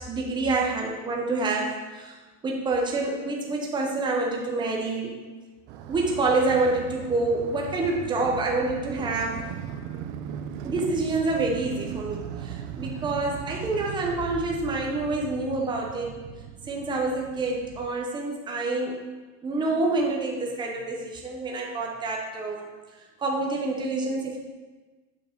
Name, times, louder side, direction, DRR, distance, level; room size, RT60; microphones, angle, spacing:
voice 1, 0.0-2.2 2.4-5.1 5.9-9.4 10.6-16.2 16.6-19.0 19.4-22.7 23.2-24.4, right 3 dB, 10° right, 0 dB, 0.7 m, -27 dB
Motorcycle, 5.7-17.9, right 9 dB, 50° right, 0.5 m, -38 dB
7.1 x 5.3 x 3.7 m, 1.3 s
cardioid pair, 165°, 40 cm